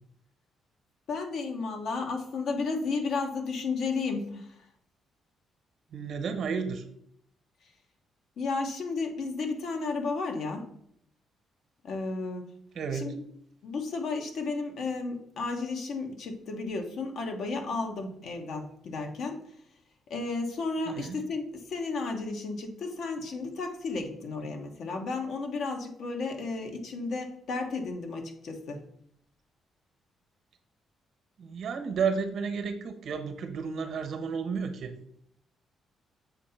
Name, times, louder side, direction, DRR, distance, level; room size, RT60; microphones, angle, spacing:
voice 1, 1.1-4.7 8.4-10.7 11.8-12.5 12.9-13.2 13.6-19.4 20.1-28.8, left 3 dB, 70° left, 4 dB, 1.1 m, -33 dB
voice 2, 5.9-6.8 12.7-13.0 20.9-21.2 31.4-34.9, right 6 dB, 65° right, 8 dB, 1.0 m, -32 dB
7.2 x 2.8 x 5.7 m, 0.71 s
cardioid pair, 90°, 0 cm